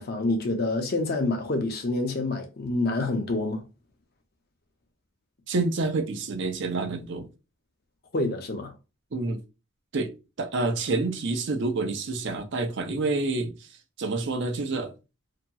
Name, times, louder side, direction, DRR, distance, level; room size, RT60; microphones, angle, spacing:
voice 1, 0.0-3.6 8.1-8.7, left 2 dB, 45° left, 0.6 m, -27 dB
voice 2, 5.5-7.3 9.1-9.4 9.9-10.1 10.4-13.5 14.0-14.9, right 3 dB, 55° right, 0.5 m, -28 dB
2.8 x 2.7 x 2.3 m
head